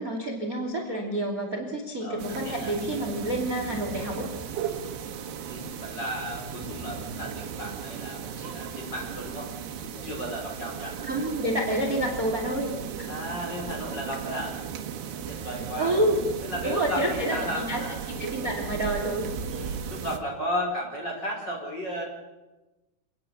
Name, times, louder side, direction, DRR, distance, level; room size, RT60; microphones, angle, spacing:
voice 1, 0.0-4.3 11.0-12.7 13.0-13.1 15.8-16.1 16.6-17.8 18.1-19.3, right 1 dB, 25° right, 3 dB, 2.6 m, -28 dB
voice 2, 2.0-2.7 5.4-9.5 9.8-11.2 13.1-14.5 15.1-16.0 16.5-18.0 19.5-22.0, equal, 25° left, 1 dB, 5.5 m, -34 dB
sound 1, 2.2-20.2, right 7 dB, 85° right, 3.7 m, -36 dB
26.5 x 19.5 x 7.3 m, 1.1 s
omnidirectional pair, 4.5 m